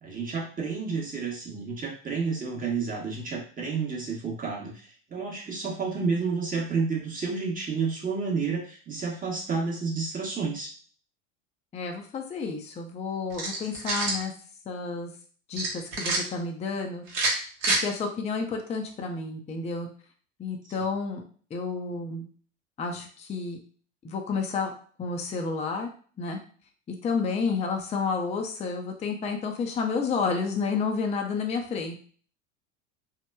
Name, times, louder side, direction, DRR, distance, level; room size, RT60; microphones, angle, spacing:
voice 1, 0.0-10.7, right 5 dB, 25° right, -2 dB, 0.9 m, -30 dB
voice 2, 11.7-14.3 14.7-15.1 15.5-17.1 17.7-19.9 20.4-21.2 21.5-22.2 22.8-23.6 24.0-24.7 25.0-25.9 26.2-26.4 27.0-32.0, left 4 dB, 20° left, 2 dB, 0.4 m, -30 dB
sound 1, 13.3-14.2 15.6-16.2 17.1-17.8, right 2 dB, 80° right, 0.9 m, -27 dB
3.0 x 2.1 x 2.2 m, 0.43 s
hypercardioid pair, 85°, 36 cm